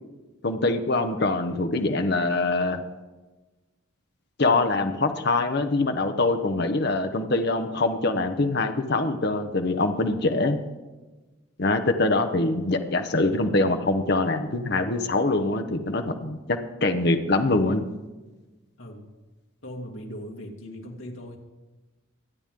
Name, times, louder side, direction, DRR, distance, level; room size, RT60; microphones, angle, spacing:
voice 1, 0.4-2.8 4.4-10.6 11.6-17.8, left 2 dB, 50° left, 6 dB, 1.0 m, -24 dB
voice 2, 19.6-21.4, equal, 70° left, 0 dB, 2.4 m, -39 dB
24.5 x 9.2 x 3.8 m, 1.2 s
head